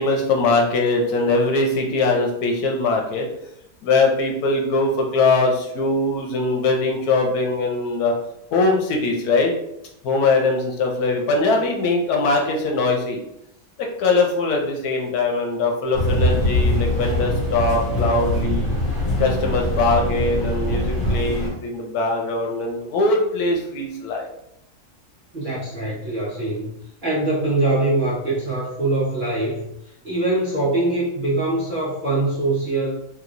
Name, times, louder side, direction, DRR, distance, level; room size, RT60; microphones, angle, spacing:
voice 1, 0.0-3.3 3.8-8.1 8.5-9.5 10.0-13.2 13.8-18.7 19.2-24.3, left 3 dB, 85° left, 1 dB, 1.2 m, -21 dB
sound 1, 15.9-21.5, left 1 dB, 40° left, 1.3 m, -22 dB
voice 2, 25.3-29.7 30.0-33.0, right 2 dB, 40° right, -7 dB, 1.0 m, -23 dB
3.0 x 2.9 x 2.5 m, 0.79 s
omnidirectional pair, 1.6 m